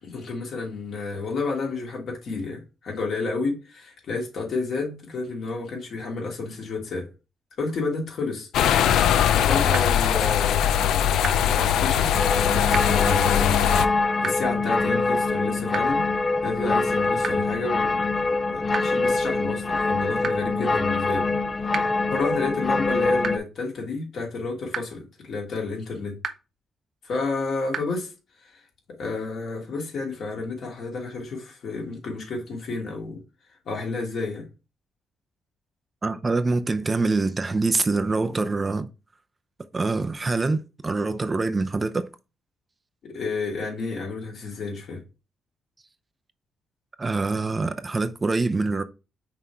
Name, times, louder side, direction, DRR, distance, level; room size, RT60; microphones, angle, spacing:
voice 1, 0.0-7.1 7.6-8.5 9.3-12.1 12.4-13.6 14.2-16.0 16.4-18.0 18.4-21.3 21.8-26.2 27.0-28.1 29.0-33.2 33.7-34.5 43.0-45.0, left 3 dB, 65° left, 2.8 m, -30 dB
sound 1, 8.5-13.9, left 9 dB, 80° left, 0.4 m, -21 dB
sound 2, 9.7-9.8 11.2-11.3 12.7-12.8 14.2-14.3 15.7-15.8 17.2-17.3 18.7-18.8 20.2-20.3 21.7-21.8 23.2-23.3 24.7-24.8 26.2-26.3 27.7-27.8, right 6 dB, 55° right, 0.8 m, -28 dB
sound 3, 12.1-23.4, left 3 dB, 35° left, 0.6 m, -24 dB
voice 2, 36.0-38.9 39.7-42.1 47.0-48.8, right 3 dB, 30° right, 0.6 m, -25 dB
5.8 x 3.6 x 4.4 m
cardioid pair, 70°, 0 cm